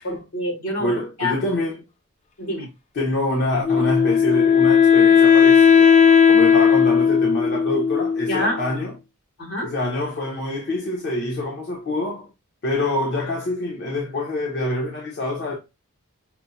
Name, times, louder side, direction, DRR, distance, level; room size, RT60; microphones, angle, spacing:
voice 1, 0.0-1.4 2.4-2.7 8.3-8.6 9.4-9.7, left 1 dB, 75° left, 2.4 m, -26 dB
voice 2, 0.8-1.8 2.9-8.9 9.6-12.3 12.6-15.6, left 1 dB, 50° left, 0.8 m, -26 dB
Wind instrument woodwind instrument, 3.6-8.7, left 7 dB, 30° left, 0.4 m, -15 dB
5.9 x 2.0 x 2.7 m
head